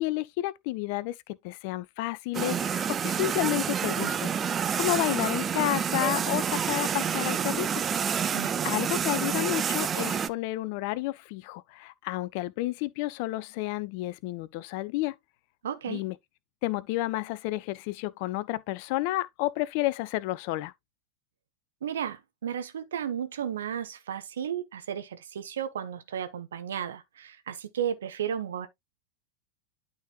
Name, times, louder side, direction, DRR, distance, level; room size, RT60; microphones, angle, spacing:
voice 1, 0.0-7.7 8.6-15.1 15.9-16.2 16.6-20.7, left 17 dB, 45° left, 0.5 m, -31 dB
sound 1, 2.3-10.3, right 7 dB, 20° right, 0.5 m, -28 dB
voice 2, 15.6-16.0 21.8-28.7, right 9 dB, 65° right, 1.1 m, -34 dB
12.0 x 3.9 x 2.5 m
figure-of-eight pair, 90°, 0 cm